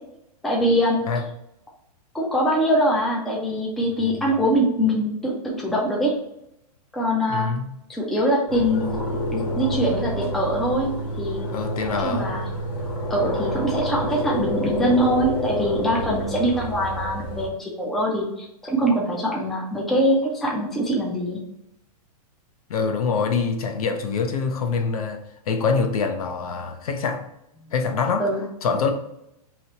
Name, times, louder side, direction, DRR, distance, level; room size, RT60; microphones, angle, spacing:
voice 1, 0.4-1.0 2.1-6.1 6.9-7.5 7.9-10.9 11.2-11.5 11.9-12.5 13.1-21.4 27.6-27.7 28.2-28.4, equal, ahead, 0.4 m, -23 dB
voice 2, 7.3-7.7 11.5-12.3 22.7-27.3 27.7-28.3 28.6-28.9, left 5 dB, 65° left, 0.7 m, -25 dB
sound 1, 8.5-17.5, equal, 45° left, 1.4 m, -28 dB
3.0 x 2.8 x 4.2 m
hypercardioid pair, 155°, 20 cm